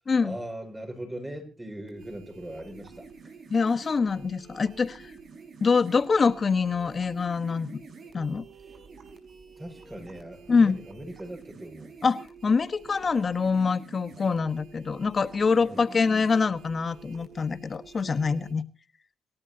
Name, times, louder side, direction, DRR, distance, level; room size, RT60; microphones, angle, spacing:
voice 1, 0.2-3.3 9.6-11.9 15.6-16.0, right 1 dB, 15° right, 4 dB, 6.0 m, -40 dB
sound 1, 1.9-18.5, right 4 dB, 60° right, 5.3 m, -49 dB
voice 2, 3.5-5.1 5.6-7.8 8.1-8.4 10.5-10.8 12.0-18.6, left 5 dB, 40° left, 12 dB, 1.2 m, -25 dB
27.0 x 13.0 x 2.8 m, 0.34 s
cardioid pair, 95°, 0 cm